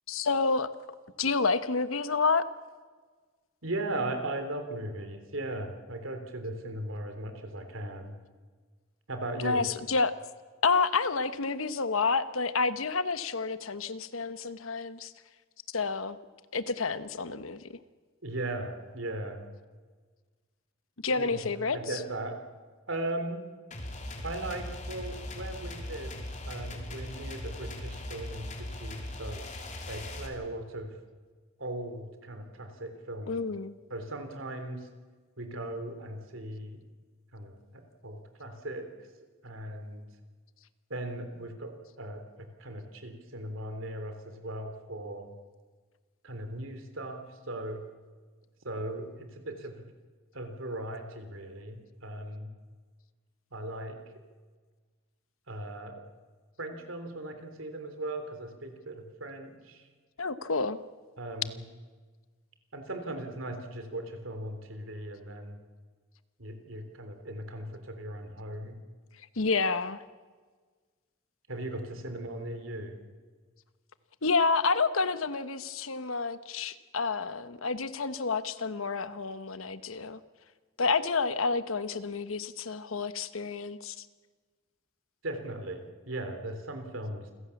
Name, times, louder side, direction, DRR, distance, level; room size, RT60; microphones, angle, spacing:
voice 1, 0.1-0.7 1.2-2.4 9.4-10.1 10.6-15.1 15.7-16.2 16.5-17.6 21.0-21.8 33.3-33.7 60.2-60.8 69.4-70.0 74.2-80.2 80.8-84.0, left 4 dB, 80° left, 12 dB, 1.1 m, -29 dB
voice 2, 3.6-8.2 9.1-9.6 18.2-19.5 21.2-21.4 21.7-22.4 22.9-23.4 24.2-26.2 26.5-29.4 29.9-30.9 31.6-33.3 33.9-34.9 35.4-36.8 37.3-38.9 39.4-40.1 40.9-45.3 46.2-47.8 48.6-49.9 50.3-52.5 53.5-54.0 55.5-56.0 56.6-59.9 61.2-61.6 62.7-65.6 66.4-68.8 71.5-73.0 85.2-87.3, right 1 dB, 70° right, 7 dB, 3.5 m, -38 dB
sound 1, 23.7-30.3, left 1 dB, 35° left, 3.2 m, -39 dB
28.0 x 16.5 x 7.2 m, 1.4 s
head